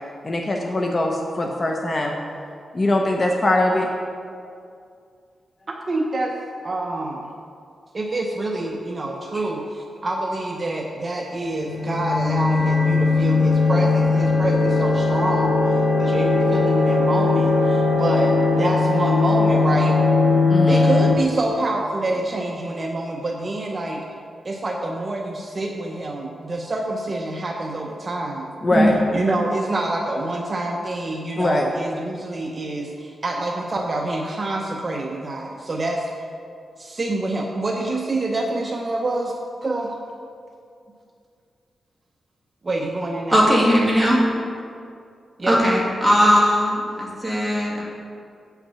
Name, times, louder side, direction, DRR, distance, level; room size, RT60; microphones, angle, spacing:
voice 1, 0.2-2.1 2.7-3.9 20.5-20.8 28.6-28.9 31.4-31.6, left 1 dB, 30° left, 1 dB, 0.7 m, -21 dB
voice 2, 5.7-6.4 6.6-7.3 7.9-20.0 20.7-24.0 24.4-28.5 29.1-36.1 36.8-39.3 39.6-40.0 42.6-43.4 45.4-45.6, right 2 dB, 35° right, 1 dB, 0.7 m, -26 dB
sound 1, 11.6-21.1, left 3 dB, 80° left, 1.2 m, -19 dB
voice 3, 43.3-44.2 45.5-47.8, equal, 5° right, -5 dB, 2.2 m, -18 dB
8.2 x 5.7 x 5.6 m, 2.4 s
wide cardioid pair, 105°, 0 cm